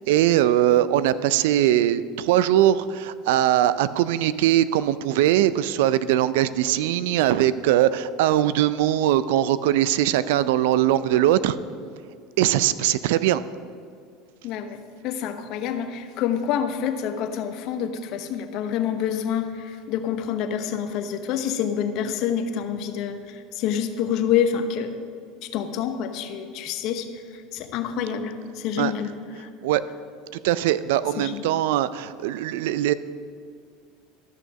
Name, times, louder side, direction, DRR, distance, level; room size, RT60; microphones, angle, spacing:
voice 1, 0.0-11.6 12.4-13.4 28.8-28.9 29.6-29.8 30.4-32.9, right 12 dB, 75° right, 15 dB, 0.4 m, -21 dB
voice 2, 14.4-24.9 25.5-27.1 27.5-29.1 29.4-29.5 31.2-31.4, left 8 dB, 60° left, 7 dB, 0.9 m, -27 dB
13.0 x 6.4 x 5.3 m, 2.2 s
hypercardioid pair, 90°, 0 cm